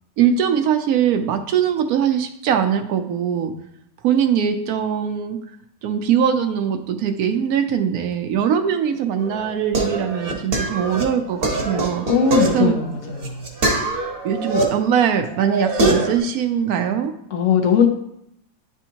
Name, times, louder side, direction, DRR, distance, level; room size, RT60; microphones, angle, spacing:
voice 1, 0.2-3.5 4.0-5.4 5.8-12.0 12.5-12.8 14.2-17.1, right 8 dB, 75° right, 6 dB, 1.1 m, -21 dB
sound 1, 9.2-14.6 15.0-16.2, right 2 dB, 45° right, 1.0 m, -23 dB
voice 2, 12.1-13.4 17.3-17.9, left 6 dB, 60° left, 2 dB, 1.0 m, -19 dB
9.9 x 3.5 x 2.8 m, 0.76 s
omnidirectional pair, 1.6 m